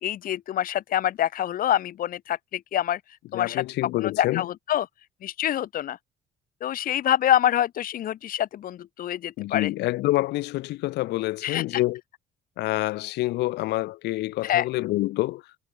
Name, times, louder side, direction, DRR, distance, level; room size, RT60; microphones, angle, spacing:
voice 1, 0.0-3.0 3.3-3.6 4.0-4.9 5.2-6.0 6.6-9.7 11.4-11.8 14.4-14.7, left 11 dB, 55° left, 1.3 m, -26 dB
voice 2, 3.3-4.5 9.4-12.0 12.6-15.4, left 18 dB, 85° left, 4.2 m, -27 dB
cardioid pair, 110°, 17 cm